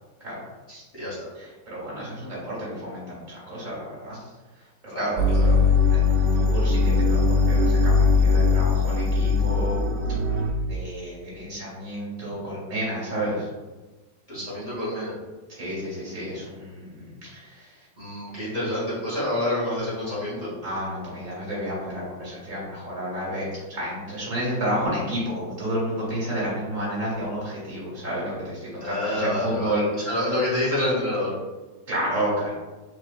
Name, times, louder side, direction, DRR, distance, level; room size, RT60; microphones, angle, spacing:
voice 1, 0.7-1.3 4.9-5.6 14.3-15.2 18.0-20.5 28.8-29.7 30.1-31.3, left 1 dB, 25° left, -10 dB, 1.6 m, -27 dB
voice 2, 1.3-4.2 4.5-5.2 5.9-9.8 10.6-13.5 15.5-17.9 20.6-29.9 31.9-32.5, equal, 45° right, -6 dB, 1.9 m, -31 dB
sound 1, 5.2-10.5, left 4 dB, 75° right, 0.8 m, -20 dB
4.7 x 3.7 x 2.4 m, 1.2 s
omnidirectional pair, 2.1 m